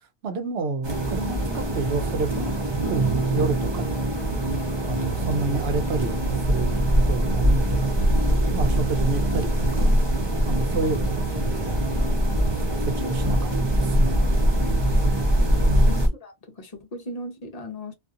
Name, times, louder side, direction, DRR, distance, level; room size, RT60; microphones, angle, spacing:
voice 1, 0.2-2.6 2.9-4.2 4.9-8.1 8.5-11.9 12.5-14.2 15.6-16.0, right 3 dB, 80° right, 0.9 m, -30 dB
sound 1, 0.8-16.1, right 1 dB, 30° right, 0.7 m, -23 dB
voice 2, 15.9-17.9, left 1 dB, 40° left, 0.8 m, -38 dB
2.6 x 2.5 x 2.4 m
omnidirectional pair, 1.1 m